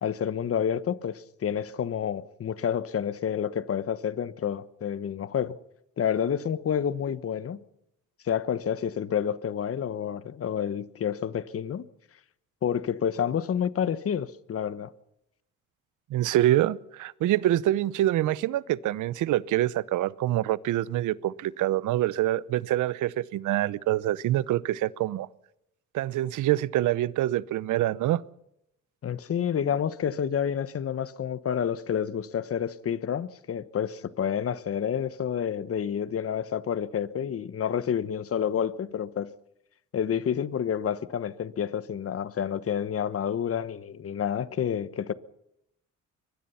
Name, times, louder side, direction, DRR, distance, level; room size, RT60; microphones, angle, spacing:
voice 1, 0.0-5.6 6.0-7.6 8.2-11.9 12.6-14.9 29.0-39.3 39.9-45.1, left 8 dB, 50° left, 1.1 m, -29 dB
voice 2, 16.1-25.3 25.9-28.2, right 14 dB, 80° right, 0.8 m, -25 dB
24.0 x 20.0 x 5.7 m
cardioid pair, 90°, 30 cm